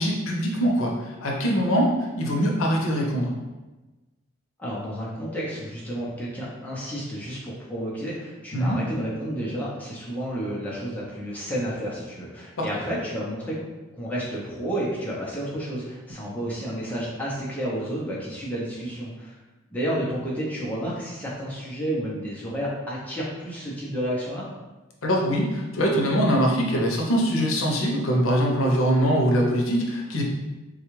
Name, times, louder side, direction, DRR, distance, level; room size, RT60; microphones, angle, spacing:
voice 1, 0.0-3.3 8.5-8.8 12.6-12.7 25.0-30.2, equal, 85° left, -1 dB, 0.7 m, -23 dB
voice 2, 4.6-13.7 13.9-19.4 19.7-24.5, equal, 10° left, -6 dB, 0.7 m, -31 dB
3.7 x 2.3 x 3.0 m, 1.1 s
head